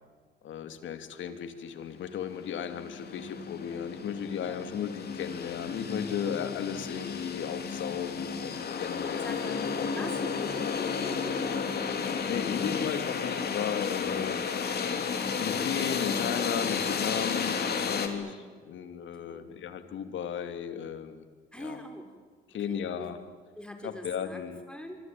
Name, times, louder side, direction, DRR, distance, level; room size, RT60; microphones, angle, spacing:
voice 1, 0.4-9.5 12.3-14.4 15.3-18.4 18.6-21.2 21.6-21.8 22.5-23.2 23.8-24.6, left 8 dB, 75° left, 9 dB, 2.8 m, -35 dB
sound 1, 2.1-2.2 2.5-18.1, left 6 dB, 55° left, 3.4 m, -32 dB
voice 2, 9.2-9.6 9.9-11.5 18.1-18.4 19.3-19.6 21.5-22.1 22.7-23.1 23.6-25.0, left 1 dB, 5° left, 4 dB, 5.5 m, -43 dB
26.0 x 24.0 x 9.4 m, 1.5 s
cardioid pair, 90°, 20 cm